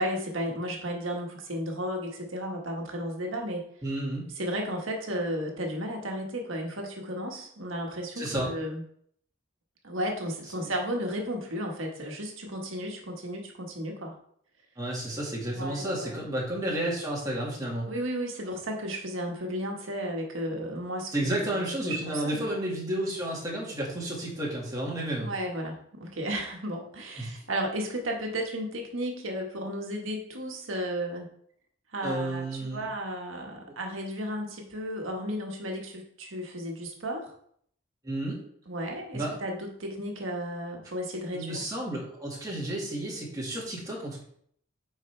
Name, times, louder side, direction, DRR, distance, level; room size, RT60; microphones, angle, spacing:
voice 1, 0.0-3.6 4.4-8.8 9.8-14.1 15.5-16.2 17.9-22.6 25.2-31.3 31.9-37.3 38.7-41.6, equal, 75° right, 1 dB, 1.5 m, -34 dB
voice 2, 3.8-4.3 8.2-8.5 14.8-17.9 21.1-25.3 27.2-27.4 32.0-32.9 38.0-38.4 39.1-39.3 41.3-44.2, right 1 dB, 15° right, -4 dB, 1.9 m, -31 dB
8.7 x 4.7 x 3.3 m, 0.66 s
head